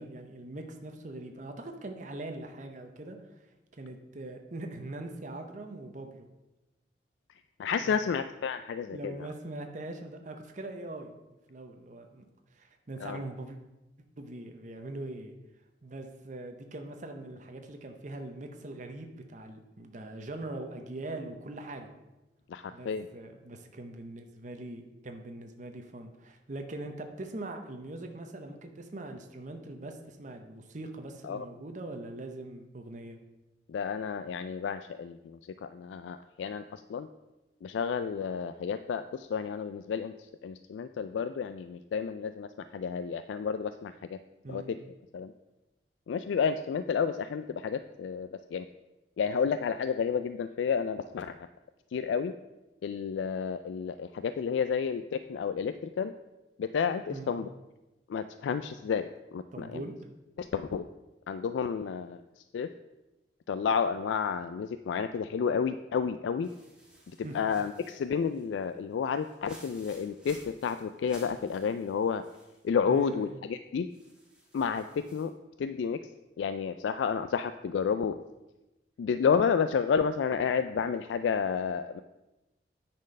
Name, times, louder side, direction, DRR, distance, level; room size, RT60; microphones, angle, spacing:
voice 1, 0.0-3.5 3.8-6.3 7.8-8.1 8.8-11.1 11.5-12.3 12.5-13.6 14.2-15.4 15.8-21.9 22.7-33.2 44.4-44.7 57.1-57.3 59.5-59.9 67.2-67.4 72.9-73.4, right 2 dB, 45° right, 5 dB, 0.7 m, -42 dB
voice 2, 7.6-9.3 13.0-13.2 22.5-23.1 31.2-31.5 33.7-37.1 37.6-44.2 44.5-44.6 45.1-45.3 46.1-48.7 49.2-51.4 51.9-52.3 52.8-56.1 56.6-57.5 58.1-59.8 60.4-60.8 61.3-62.7 63.5-66.5 67.2-72.2 72.6-73.9 74.5-75.3 75.6-76.0 76.4-78.1 79.0-82.0, left 6 dB, 85° left, 11 dB, 0.3 m, -31 dB
sound 1, 66.4-72.7 73.0-73.1 73.9-75.3, right 1 dB, 5° right, 1.5 m, -56 dB
9.6 x 4.4 x 5.3 m, 1.0 s
head